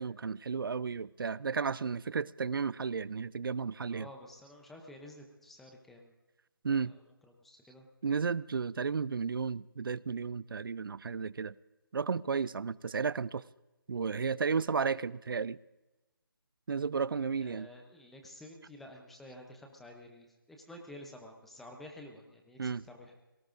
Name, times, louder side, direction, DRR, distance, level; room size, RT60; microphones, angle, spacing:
voice 1, 0.0-4.1 6.6-6.9 8.0-11.5 11.9-13.4 13.9-15.6 16.7-17.7 22.6-22.8, right 5 dB, 70° right, 0.4 m, -33 dB
voice 2, 3.9-6.1 6.7-7.0 7.4-7.9 17.4-23.1, left 1 dB, ahead, 0.6 m, -51 dB
27.0 x 18.0 x 2.5 m
hypercardioid pair, 170°, 12 cm